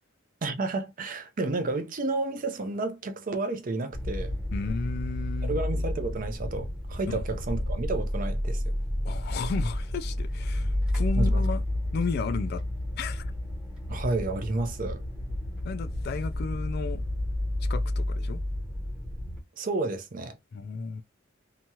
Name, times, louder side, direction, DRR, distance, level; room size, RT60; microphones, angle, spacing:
voice 1, 0.4-4.3 5.4-8.6 11.2-11.4 13.9-15.0 19.6-20.3, right 2 dB, 45° right, 0.5 m, -31 dB
sound 1, 3.9-19.4, left 1 dB, 5° right, 0.8 m, -30 dB
voice 2, 4.5-5.6 7.1-7.2 9.0-11.6 11.9-12.6 13.0-13.3 15.6-17.0 17.6-18.4 20.5-21.0, left 4 dB, 50° left, 0.3 m, -33 dB
2.9 x 2.3 x 2.7 m
head